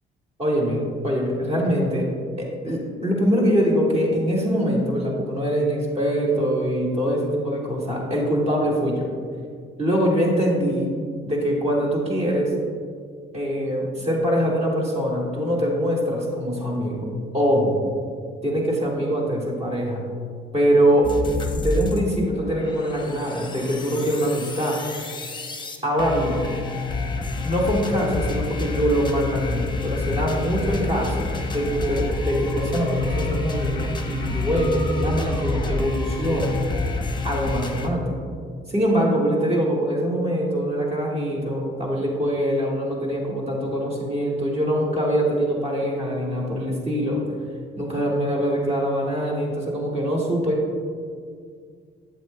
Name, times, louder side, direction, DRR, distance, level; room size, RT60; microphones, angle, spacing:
voice 1, 0.4-2.1 2.4-9.1 9.8-10.9 11.2-12.5 13.3-17.1 17.3-17.8 18.4-20.0 20.5-21.1 21.5-24.8 25.8-26.4 27.4-36.6 37.2-38.1 38.7-47.2 47.8-50.6, equal, 30° right, -3 dB, 1.8 m, -23 dB
sound 1, 21.0-22.0 22.3-37.9, left 2 dB, 25° left, 0.8 m, -28 dB
8.3 x 7.7 x 2.2 m, 2.1 s
cardioid pair, 90°, 20 cm